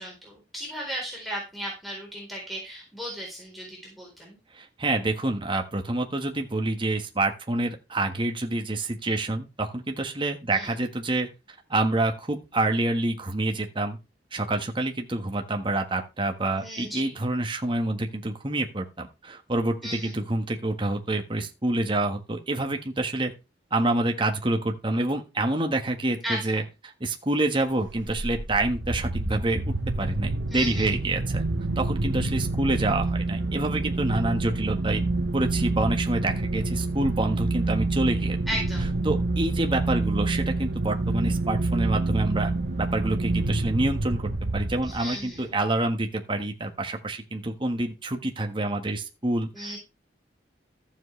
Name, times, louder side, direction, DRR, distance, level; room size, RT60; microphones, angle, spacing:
voice 1, 0.0-4.4 10.5-10.7 16.6-17.2 19.8-20.2 26.2-26.6 30.5-30.9 38.5-38.9 44.8-45.5 49.5-49.8, equal, ahead, -3 dB, 4.0 m, -35 dB
voice 2, 4.5-11.3 11.7-14.0 14.3-23.3 23.7-26.6 27.0-31.4 31.8-35.0 35.3-38.4 39.0-42.5 42.8-44.2 44.5-49.8, right 2 dB, 30° right, 4 dB, 1.5 m, -27 dB
sound 1, 27.8-45.2, right 2 dB, 90° right, 1.1 m, -27 dB
14.0 x 7.5 x 3.3 m, 0.27 s
head